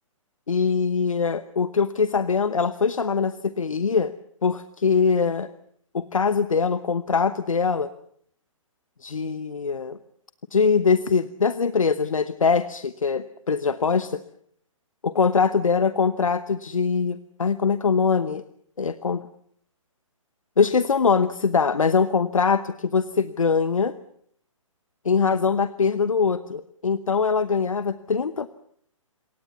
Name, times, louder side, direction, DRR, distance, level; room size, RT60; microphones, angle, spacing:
voice 1, 0.5-4.1 4.4-5.5 5.9-7.9 9.0-10.0 10.5-14.2 15.0-18.4 18.8-19.2 20.6-23.9 25.0-28.5, left 5 dB, 75° left, 14 dB, 1.0 m, -22 dB
27.0 x 23.0 x 7.0 m, 0.68 s
figure-of-eight pair, 125°, 17 cm